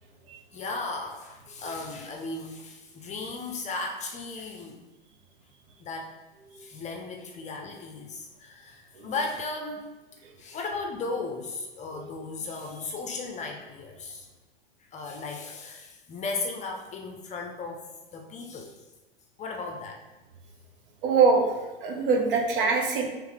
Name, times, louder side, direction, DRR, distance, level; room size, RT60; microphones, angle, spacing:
voice 1, 0.5-4.8 5.8-6.1 6.6-9.9 10.4-14.3 14.9-17.8 18.1-18.7 19.4-20.0, left 3 dB, 25° left, 2 dB, 0.5 m, -36 dB
voice 2, 21.0-21.5 21.8-23.1, right 5 dB, 65° right, 0 dB, 1.0 m, -24 dB
3.5 x 3.1 x 3.3 m, 1.1 s
hypercardioid pair, 100°, 29 cm